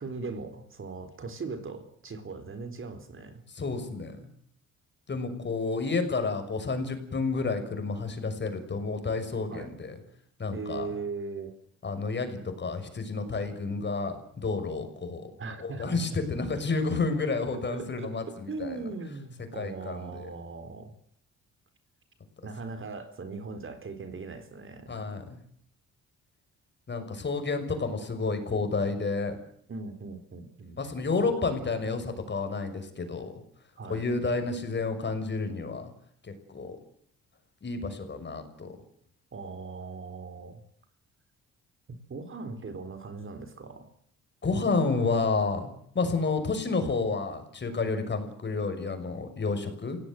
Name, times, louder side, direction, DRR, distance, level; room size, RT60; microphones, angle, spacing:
voice 1, 0.0-3.4 9.5-9.8 10.5-11.5 15.4-16.2 17.7-20.9 22.4-25.0 29.7-30.8 33.8-34.1 39.3-40.6 41.9-43.9, right 4 dB, 40° right, 10 dB, 4.1 m, -39 dB
voice 2, 3.5-4.3 5.1-9.9 10.4-10.9 11.8-15.3 15.6-18.8 19.5-20.3 24.9-25.4 26.9-29.4 30.8-33.3 33.9-35.9 36.2-36.8 37.6-38.7 44.4-50.0, left 4 dB, 35° left, 8 dB, 6.3 m, -30 dB
29.0 x 17.5 x 7.8 m, 0.69 s
cardioid pair, 90°, 30 cm